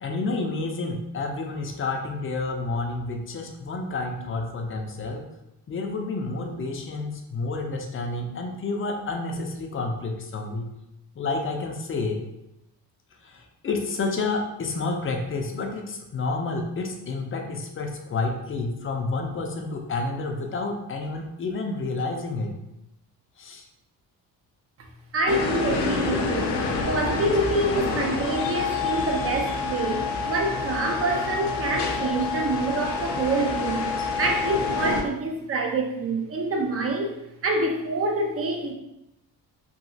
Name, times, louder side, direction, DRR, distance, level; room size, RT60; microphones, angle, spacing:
voice 1, 0.0-5.2 5.7-10.7 11.2-12.2 13.2-22.5 23.4-23.7, left 3 dB, 30° left, 3 dB, 0.5 m, -29 dB
voice 2, 25.1-26.6 26.9-33.9 34.2-37.1 37.4-38.7, right 2 dB, 35° right, 2 dB, 0.6 m, -26 dB
sound 1, 25.3-35.0, left 4 dB, 80° left, 0.6 m, -27 dB
3.1 x 2.8 x 2.7 m, 0.88 s
cardioid pair, 115°, 40 cm